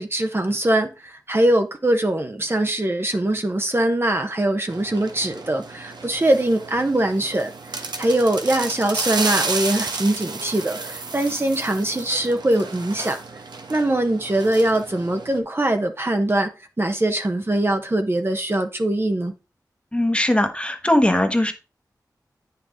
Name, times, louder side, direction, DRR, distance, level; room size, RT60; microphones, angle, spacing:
voice 1, 0.0-7.5 8.0-13.2 13.7-16.5 16.8-19.3, right 1 dB, 35° right, 1.0 m, -22 dB
sound 1, 4.7-15.4, right 3 dB, 80° right, 1.2 m, -32 dB
voice 2, 19.9-21.5, left 1 dB, 15° left, 1.2 m, -20 dB
9.2 x 5.9 x 3.6 m
wide cardioid pair, 60°, 7 cm